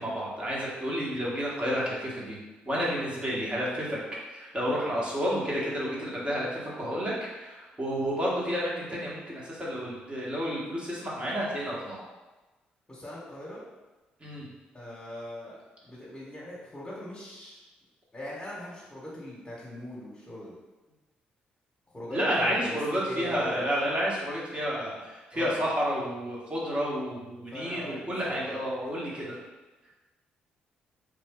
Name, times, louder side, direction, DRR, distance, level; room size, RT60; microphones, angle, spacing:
voice 1, 0.0-2.4 2.6-4.0 4.3-12.0 14.2-14.4 22.1-29.4, equal, 30° right, -5 dB, 1.4 m, -30 dB
voice 2, 12.9-13.6 14.7-17.6 18.1-20.5 21.9-22.8 23.0-23.7 25.3-25.6 27.5-28.6, equal, 20° left, -6 dB, 1.3 m, -40 dB
3.3 x 2.6 x 3.6 m, 1.2 s
supercardioid pair, 60°, 4 cm